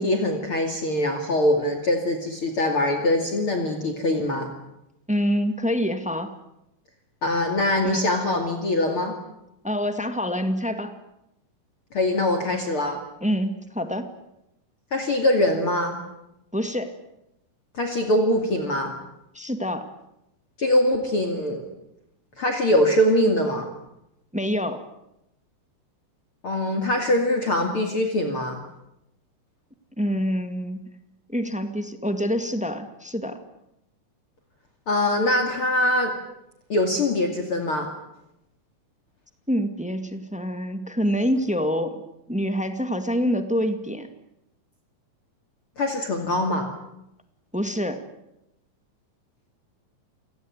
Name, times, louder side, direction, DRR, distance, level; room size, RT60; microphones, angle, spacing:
voice 1, 0.0-4.5 7.2-9.1 11.9-13.0 14.9-16.0 17.7-18.9 20.6-21.6 22.4-23.7 26.4-28.6 34.9-36.1 36.7-37.9 45.8-46.7, left 1 dB, 40° left, 4 dB, 3.0 m, -23 dB
voice 2, 5.1-6.3 7.8-8.0 9.6-10.9 13.2-14.1 16.5-16.9 19.3-19.9 24.3-24.8 30.0-30.8 31.3-33.4 39.5-42.0 42.3-44.1 47.5-48.0, equal, 5° right, 8 dB, 0.9 m, -26 dB
28.5 x 18.0 x 9.6 m, 0.85 s
omnidirectional pair, 3.9 m